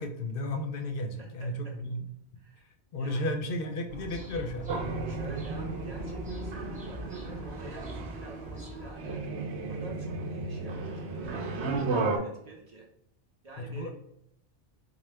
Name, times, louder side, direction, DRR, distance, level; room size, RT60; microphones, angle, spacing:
voice 1, 0.0-2.0 2.9-4.7 13.6-13.9, left 1 dB, 60° left, 6 dB, 0.6 m, -33 dB
voice 2, 1.2-1.7 2.4-2.7 3.0-3.3 5.1-12.9 13.4-13.9, right 2 dB, 45° right, 0 dB, 0.6 m, -49 dB
sound 1, 3.9-8.9, right 1 dB, 10° right, 0.7 m, -42 dB
sound 2, 4.7-12.2, right 3 dB, 70° right, 0.9 m, -34 dB
4.5 x 2.2 x 3.3 m, 0.76 s
omnidirectional pair, 1.2 m